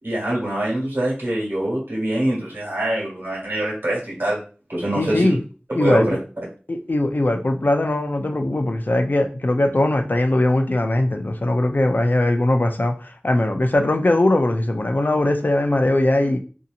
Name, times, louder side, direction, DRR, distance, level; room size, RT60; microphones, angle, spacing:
voice 1, 0.0-4.4 4.7-5.3 5.8-6.2, right 1 dB, 80° right, -5 dB, 1.5 m, -24 dB
voice 2, 5.0-5.4 5.7-6.2 6.7-16.4, left 1 dB, 55° left, 5 dB, 0.4 m, -20 dB
2.8 x 2.7 x 2.4 m, 0.37 s
wide cardioid pair, 45°, 4 cm